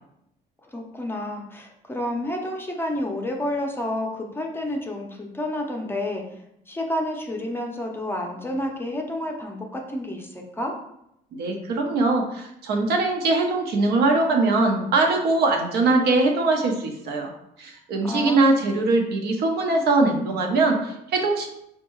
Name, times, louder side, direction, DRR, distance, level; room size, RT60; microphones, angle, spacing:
voice 1, 0.7-6.4 6.7-10.7 18.0-18.7, left 1 dB, 15° left, 1 dB, 0.6 m, -30 dB
voice 2, 11.3-17.3 17.6-21.5, right 3 dB, 70° right, 2 dB, 0.7 m, -22 dB
4.4 x 2.3 x 3.0 m, 0.78 s
cardioid pair, 110°, 17 cm